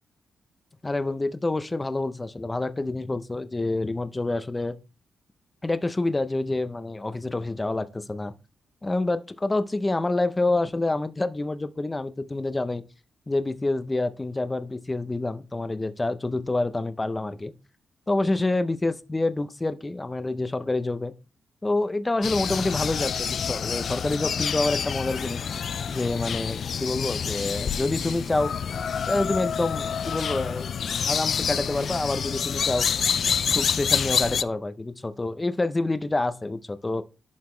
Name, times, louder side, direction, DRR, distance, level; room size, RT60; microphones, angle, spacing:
voice 1, 0.8-4.8 5.6-8.3 8.8-12.8 13.3-17.5 18.1-21.1 21.6-25.5 25.9-28.5 29.1-30.7 31.1-32.9 33.3-37.0, left 2 dB, 20° left, 0.6 m, -27 dB
sound 1, 22.2-34.4, left 7 dB, 65° left, 0.3 m, -27 dB
11.5 x 4.0 x 3.2 m
cardioid pair, 100°, 0 cm